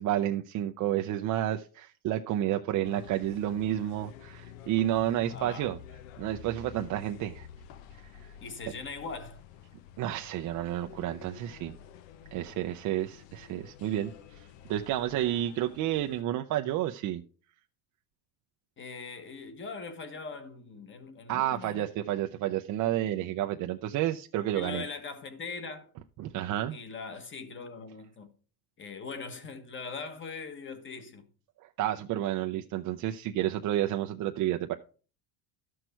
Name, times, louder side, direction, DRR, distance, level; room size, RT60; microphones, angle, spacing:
voice 1, 0.0-5.8 6.2-7.5 8.0-8.3 10.0-11.8 12.3-17.2 21.3-24.8 26.2-26.8 31.6-34.7, right 12 dB, 45° right, 0.6 m, -30 dB
sound 1, 2.8-16.2, left 9 dB, 75° left, 1.1 m, -50 dB
voice 2, 5.3-5.7 8.4-9.4 18.8-21.9 24.5-25.9 26.7-28.3 28.8-31.2, left 4 dB, 25° left, 1.4 m, -41 dB
12.5 x 6.2 x 4.5 m
cardioid pair, 145°, 45 cm